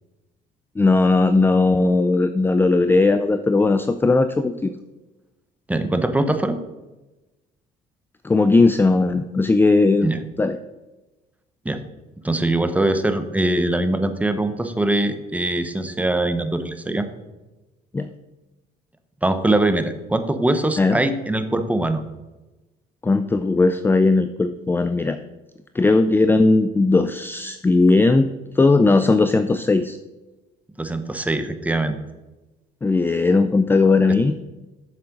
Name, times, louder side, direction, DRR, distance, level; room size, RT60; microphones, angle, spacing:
voice 1, 0.8-4.7 8.2-10.1 10.4-10.6 17.9-18.1 20.8-21.0 23.0-25.2 25.7-28.3 28.5-30.0 32.8-34.4, left 3 dB, 15° left, 11 dB, 0.4 m, -18 dB
voice 2, 5.7-6.6 10.0-10.2 11.6-11.8 12.2-17.1 19.2-22.0 30.8-32.0, right 2 dB, 10° right, 9 dB, 0.9 m, -22 dB
7.6 x 7.2 x 5.2 m, 1.1 s
cardioid pair, 110°, 17 cm